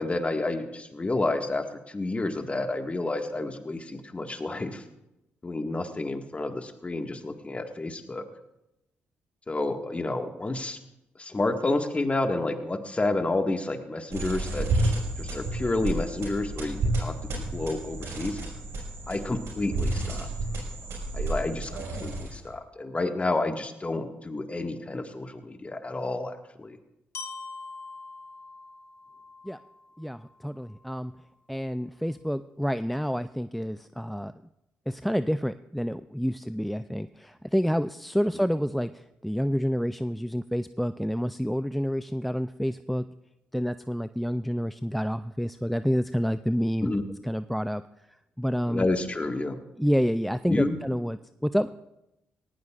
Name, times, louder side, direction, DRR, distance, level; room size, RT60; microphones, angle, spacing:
voice 1, 0.0-4.8 5.4-8.3 9.5-10.8 11.2-18.4 19.1-20.3 21.1-26.8 46.8-47.0 48.7-49.6 50.5-50.8, left 2 dB, 25° left, 5 dB, 1.8 m, -30 dB
sound 1, 14.1-22.5, right 2 dB, 65° right, 5.2 m, -31 dB
Glockenspiel, 27.1-31.1, left 4 dB, 65° left, 1.5 m, -44 dB
voice 2, 30.0-31.1 31.5-34.3 34.9-43.0 43.5-46.9 47.2-47.8 48.4-48.9 49.8-51.7, equal, ahead, 13 dB, 0.4 m, -28 dB
19.0 x 16.0 x 2.5 m, 0.90 s
hypercardioid pair, 50°, 5 cm